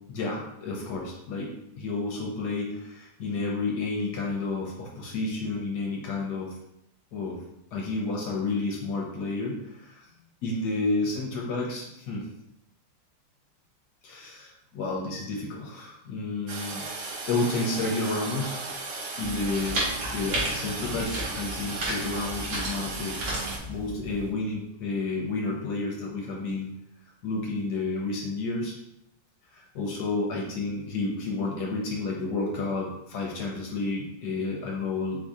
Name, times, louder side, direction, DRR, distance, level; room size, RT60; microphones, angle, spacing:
voice 1, 0.1-1.5 1.8-6.6 7.1-7.4 7.7-10.1 10.4-12.3 14.0-16.9 17.2-18.6 19.2-19.9 20.1-26.7 27.2-28.7 29.5-35.3, left 3 dB, 70° left, -1 dB, 1.2 m, -31 dB
Toilet flush, 16.5-23.6, right 3 dB, 60° right, 0.8 m, -36 dB
sound 1, 19.2-24.3, right 1 dB, 85° right, 2.1 m, -33 dB
4.6 x 2.7 x 3.6 m, 0.83 s
omnidirectional pair, 2.0 m